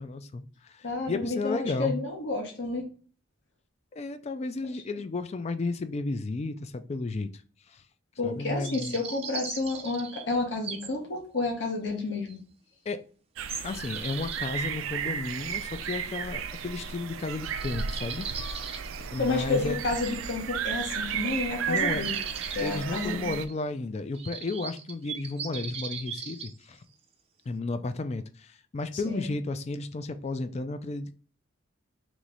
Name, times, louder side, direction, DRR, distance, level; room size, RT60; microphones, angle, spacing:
voice 1, 0.0-2.0 3.9-7.4 7.7-7.8 8.2-9.0 12.9-13.0 13.6-18.7 19.1-19.8 21.7-22.0 22.6-26.8 27.5-31.1, left 3 dB, 35° left, 0.3 m, -33 dB
voice 2, 0.8-2.9 8.2-12.4 19.2-22.2 22.5-23.3 29.0-29.3, left 3 dB, 65° left, 1.2 m, -30 dB
sound 1, 8.6-10.9 11.4-11.5 12.3-12.4 13.5-14.5 16.8-16.9 17.2-17.3 17.6-19.4 21.7-22.8 23.5-23.6 24.1-26.5, right 6 dB, 30° right, 0.5 m, -39 dB
sound 2, 13.4-23.5, right 7 dB, 80° right, 0.4 m, -34 dB
3.1 x 3.1 x 3.8 m
head